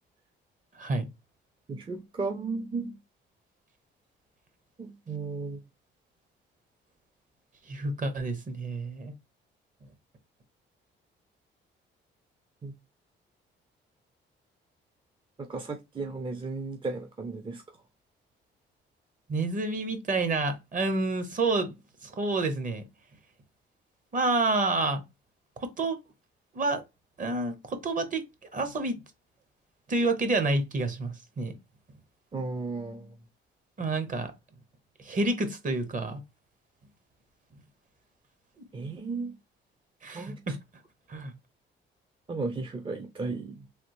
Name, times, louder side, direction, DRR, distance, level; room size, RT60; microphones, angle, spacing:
voice 1, 1.7-3.0 4.8-5.6 12.6-12.7 15.4-17.6 32.3-33.2 38.7-39.4 40.1-40.6 42.3-43.7, right 3 dB, 25° right, 0.5 m, -35 dB
voice 2, 7.7-9.1 19.3-21.7 22.0-22.8 24.1-25.0 25.6-26.0 26.5-26.8 27.2-28.2 28.5-29.0 29.9-31.5 33.8-34.3 35.0-36.2 40.0-40.5 41.1-41.3, right 2 dB, 40° right, 0.9 m, -29 dB
3.4 x 2.4 x 2.9 m
cardioid pair, 90°, 20 cm